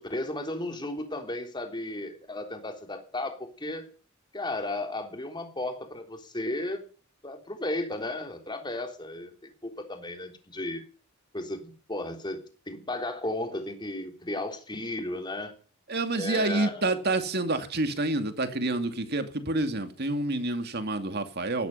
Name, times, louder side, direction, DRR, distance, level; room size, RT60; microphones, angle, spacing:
voice 1, 0.0-3.9 4.3-6.8 7.2-10.8 11.3-15.6 16.1-16.9, left 2 dB, 20° left, 3.5 m, -34 dB
voice 2, 15.9-21.7, right 2 dB, 50° right, 2.5 m, -28 dB
17.5 x 13.0 x 5.8 m
head